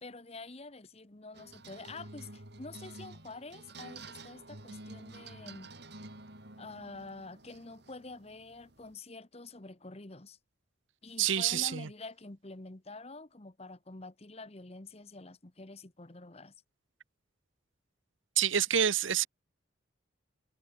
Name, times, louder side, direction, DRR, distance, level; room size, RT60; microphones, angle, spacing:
voice 1, 0.0-5.7 6.6-10.4 11.0-16.5, left 3 dB, 30° left, 1.2 m, -47 dB
sound 1, 1.3-9.0, right 2 dB, 55° right, 5.0 m, -50 dB
voice 2, 11.2-11.9 18.4-19.3, right 9 dB, 75° right, 0.9 m, -27 dB
head